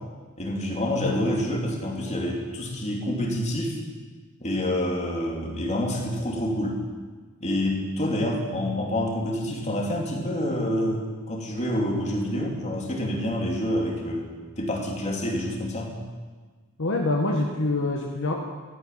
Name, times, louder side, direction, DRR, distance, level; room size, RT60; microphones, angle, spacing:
voice 1, 0.4-3.8 4.4-6.8 7.4-14.3 14.6-15.9, left 1 dB, 30° left, -1 dB, 3.1 m, -27 dB
voice 2, 16.8-18.3, left 2 dB, 65° left, 1 dB, 1.5 m, -25 dB
13.5 x 10.0 x 9.4 m, 1.4 s
head